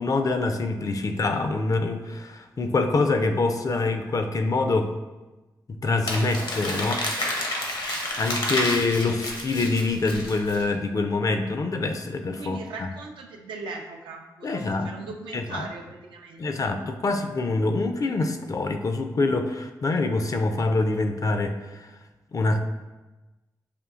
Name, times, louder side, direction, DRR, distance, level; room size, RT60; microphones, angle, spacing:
voice 1, 0.0-4.9 5.7-7.3 8.2-12.9 14.4-14.9 15.3-15.7 16.4-21.9 22.3-22.6, left 3 dB, 45° left, 7 dB, 0.4 m, -25 dB
Crumpling crinkling, 6.0-10.6, left 1 dB, 70° left, 0.8 m, -30 dB
voice 2, 12.4-16.7, right 3 dB, 90° right, 2 dB, 0.4 m, -39 dB
5.1 x 2.6 x 2.4 m, 1.1 s
cardioid pair, 50°, 8 cm